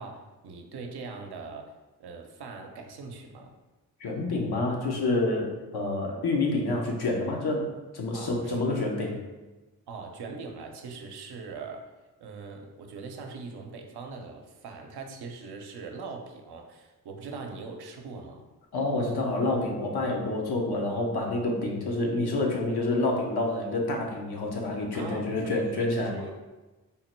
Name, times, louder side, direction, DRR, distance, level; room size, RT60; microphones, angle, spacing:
voice 1, 0.0-1.7 2.0-3.6 8.1-9.1 9.9-11.9 12.2-18.5 24.9-26.4, right 4 dB, 70° right, 3 dB, 0.7 m, -41 dB
voice 2, 4.0-9.2 18.7-26.2, left 2 dB, 65° left, 0 dB, 0.9 m, -28 dB
3.6 x 2.1 x 4.3 m, 1.2 s
supercardioid pair, 45°, 41 cm